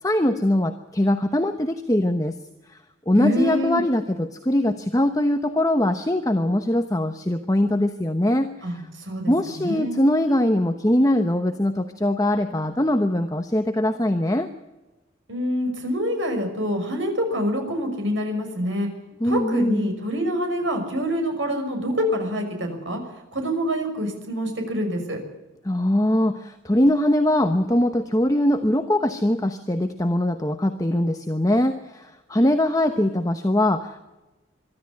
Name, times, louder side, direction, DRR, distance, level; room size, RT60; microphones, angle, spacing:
voice 1, 0.0-2.4 2.7-2.8 3.1-8.8 9.3-14.5 19.2-19.8 25.6-34.0, left 1 dB, 15° left, 7 dB, 0.9 m, -22 dB
voice 2, 3.1-3.8 8.6-10.0 15.3-18.9 19.2-23.0 23.3-25.2, equal, 70° right, 4 dB, 5.9 m, -26 dB
23.0 x 13.0 x 9.7 m, 1.1 s
head